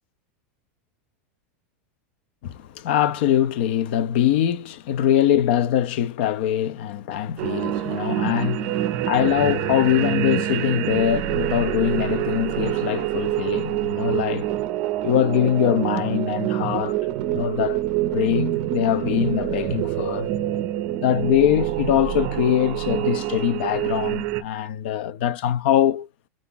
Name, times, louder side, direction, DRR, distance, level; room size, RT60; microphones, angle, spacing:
voice 1, 2.4-14.5 15.0-17.0 17.3-17.8 18.1-20.3 21.0-26.1, left 10 dB, 50° left, 0.4 m, -23 dB
sound 1, 7.4-24.4, right 13 dB, 35° right, 0.5 m, -26 dB
4.6 x 2.4 x 3.8 m
supercardioid pair, 170°, 7 cm